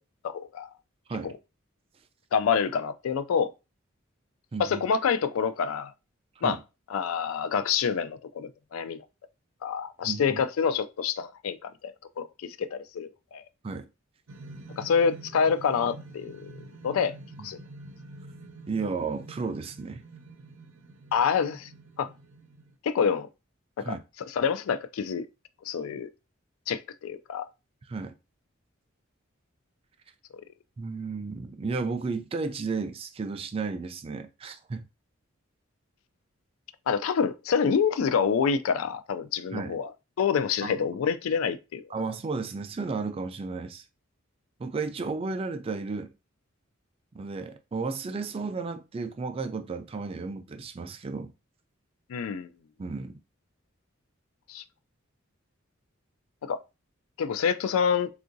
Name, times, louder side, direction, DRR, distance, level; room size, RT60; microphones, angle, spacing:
voice 1, 0.2-0.7 2.3-3.5 4.6-5.9 6.4-6.6 6.9-9.0 9.6-11.6 11.8-13.4 14.8-16.5 16.8-17.1 17.4-17.6 21.1-21.7 22.0-22.1 22.8-23.3 23.8-24.0 24.3-25.3 25.7-26.1 26.7-27.5 36.9-39.9 40.2-41.8 52.1-52.5 54.5-54.6 56.4-56.6 57.2-58.1, left 6 dB, 85° left, 0.3 m, -27 dB
voice 2, 4.5-4.8 6.4-6.6 10.0-10.4 13.6-13.9 17.4-17.5 18.7-20.0 23.8-24.0 27.9-28.1 30.8-34.8 39.5-39.7 40.6-40.8 41.9-43.8 44.6-46.1 47.1-51.3 52.8-53.2, right 4 dB, 25° right, 0.3 m, -33 dB
sound 1, 14.3-22.8, right 2 dB, 80° right, 0.6 m, -47 dB
3.7 x 2.4 x 2.6 m
head